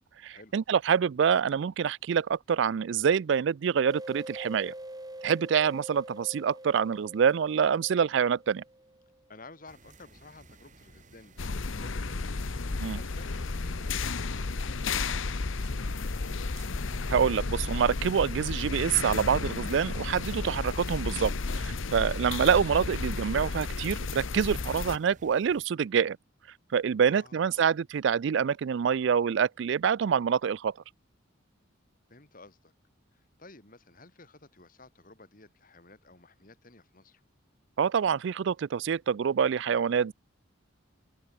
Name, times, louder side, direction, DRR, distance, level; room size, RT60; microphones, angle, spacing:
voice 1, 0.2-4.7 5.2-8.6 12.8-13.0 17.1-26.2 26.7-30.7 37.8-40.1, right 7 dB, 60° right, 0.3 m, -26 dB
sound 1, 3.9-9.2, right 1 dB, 20° right, 2.6 m, -45 dB
voice 2, 9.3-12.3 12.7-16.4 27.0-27.7 32.1-32.7 33.1-37.2, left 2 dB, 45° left, 3.2 m, -53 dB
sound 2, 9.7-25.6, right 2 dB, 40° right, 3.6 m, -55 dB
sound 3, 11.4-25.0, left 3 dB, 75° left, 0.9 m, -33 dB
open air
head